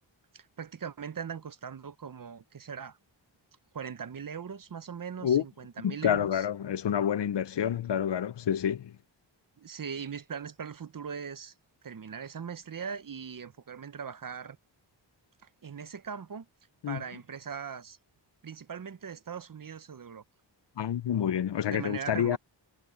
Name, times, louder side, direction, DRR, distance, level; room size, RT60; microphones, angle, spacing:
voice 1, 0.3-3.0 3.7-6.4 9.6-11.5 11.8-14.6 15.4-16.5 16.9-18.0 18.4-20.2 21.7-22.4, right 7 dB, 45° right, 0.7 m, -40 dB
voice 2, 5.8-9.0 16.8-17.0 20.8-22.4, left 9 dB, 65° left, 0.6 m, -28 dB
wide cardioid pair, 110°, 46 cm